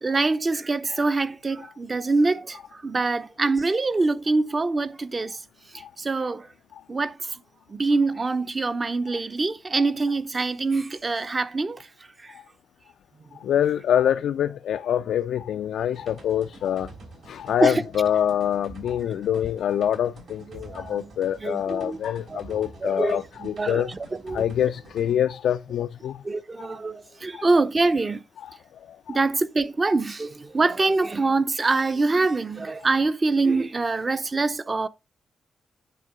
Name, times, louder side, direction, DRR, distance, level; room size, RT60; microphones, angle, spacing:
voice 1, 0.0-5.4 6.0-6.5 6.9-7.4 7.7-11.8 12.2-12.3 17.6-17.8 20.5-21.1 21.4-22.0 22.3-22.4 22.8-24.0 24.2-24.4 26.2-28.2 29.1-34.9, right 3 dB, 30° right, 0.6 m, -24 dB
voice 2, 13.4-16.9 17.3-23.9 24.3-26.2 27.3-27.5 28.4-28.5 29.1-29.2, left 10 dB, 85° left, 0.3 m, -25 dB
sound 1, 15.9-25.2, right 2 dB, 75° right, 3.4 m, -47 dB
9.2 x 3.6 x 4.9 m
cardioid pair, 85°, 0 cm